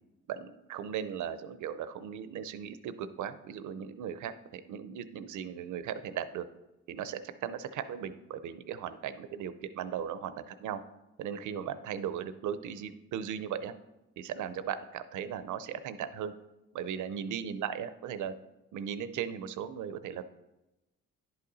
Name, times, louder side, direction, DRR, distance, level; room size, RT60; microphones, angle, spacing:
voice 1, 0.3-6.5 6.9-10.8 11.2-13.7 14.2-16.3 16.7-18.3 18.7-20.3, right 8 dB, 75° right, 13 dB, 0.6 m, -37 dB
10.5 x 5.7 x 4.0 m, 0.97 s
cardioid pair, 90°, 30 cm